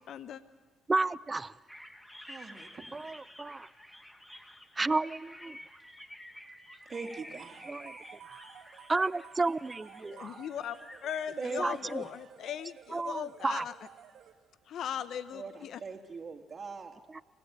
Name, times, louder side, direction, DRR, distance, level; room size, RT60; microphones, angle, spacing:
voice 1, 0.1-0.4 10.1-13.7 14.7-15.8, left 9 dB, 65° left, 13 dB, 0.9 m, -38 dB
voice 2, 0.9-1.5 2.9-3.7 4.8-5.6 7.7-7.9 8.3-8.4 8.9-10.4 11.6-12.0 12.9-13.6 17.1-17.2, right 3 dB, 25° right, 19 dB, 0.6 m, -32 dB
sound 1, 1.7-12.1, equal, 10° left, 2.0 m, -51 dB
voice 3, 2.3-3.1 6.9-7.7 11.4-11.7 12.0-12.1 15.3-17.0, right 4 dB, 40° right, 3 dB, 3.0 m, -41 dB
sound 2, 6.9-14.7, right 9 dB, 65° right, 1.6 m, -54 dB
26.0 x 17.0 x 8.9 m, 1.4 s
hypercardioid pair, 60°, 0 cm